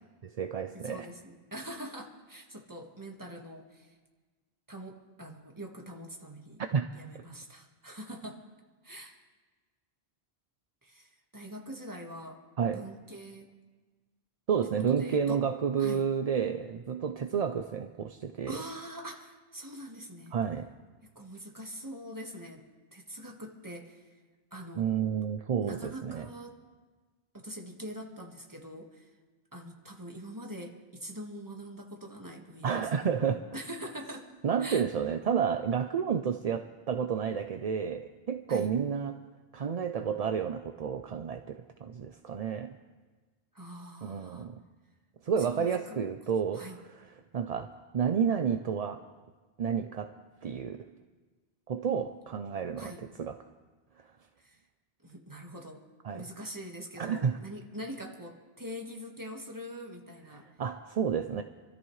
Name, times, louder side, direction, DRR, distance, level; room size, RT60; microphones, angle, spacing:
voice 1, 0.2-1.1 6.7-6.9 12.6-12.8 14.5-18.6 20.3-20.7 24.8-26.3 32.6-33.4 34.4-39.2 39.5-42.8 44.0-44.6 45.2-46.7 46.9-47.1 47.3-49.0 49.6-50.1 50.4-50.9 51.7-52.9 53.2-53.4 56.0-56.3 57.0-57.4 60.6-61.4, right 7 dB, 45° right, 7 dB, 0.5 m, -30 dB
voice 2, 0.7-3.9 4.7-6.6 6.9-8.4 8.8-9.2 10.8-12.4 12.7-13.5 14.9-15.4 15.8-16.1 18.5-20.4 21.0-22.6 22.9-24.1 24.5-24.9 25.6-26.6 27.3-29.1 29.5-32.9 33.5-34.3 34.6-34.8 38.5-38.7 43.5-44.5 45.4-46.0 46.5-46.8 52.8-53.0 54.4-54.6 55.0-55.8 56.1-60.5, equal, 20° right, 1 dB, 1.6 m, -44 dB
27.5 x 13.5 x 3.2 m, 1.3 s
omnidirectional pair, 1.1 m